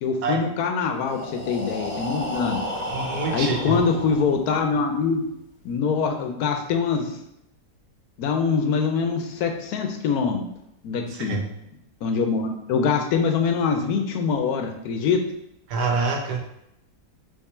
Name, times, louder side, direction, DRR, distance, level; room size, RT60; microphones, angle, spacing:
voice 1, 0.0-2.6 3.3-5.2 5.6-7.2 8.2-10.5 10.8-11.4 12.0-15.2, left 5 dB, 70° left, 4 dB, 1.1 m, -24 dB
Breathing, 0.9-4.8, equal, 10° left, 1.1 m, -32 dB
voice 2, 2.9-3.8 11.1-11.4 15.7-16.4, right 4 dB, 80° right, 2 dB, 1.4 m, -26 dB
3.7 x 3.2 x 4.2 m, 0.79 s
omnidirectional pair, 1.8 m